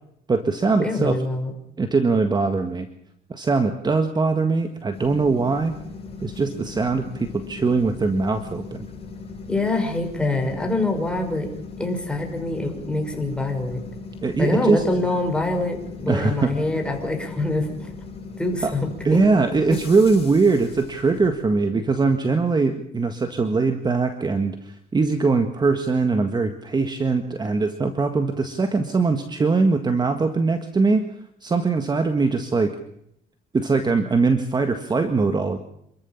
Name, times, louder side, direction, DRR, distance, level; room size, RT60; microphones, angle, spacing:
voice 1, 0.3-1.2 1.8-2.9 3.3-5.7 6.2-8.9 14.2-15.1 16.1-16.5 18.6-18.7 19.0-31.0 31.4-32.7 33.5-35.6, right 4 dB, 25° right, 7 dB, 1.7 m, -21 dB
voice 2, 0.8-1.5 9.5-11.5 11.8-13.8 14.4-17.9 18.4-19.2, left 2 dB, 5° left, 4 dB, 5.5 m, -25 dB
sound 1, 4.9-21.3, left 4 dB, 35° left, 7.4 m, -39 dB
27.5 x 14.0 x 7.3 m, 0.74 s
cardioid pair, 110°, 17 cm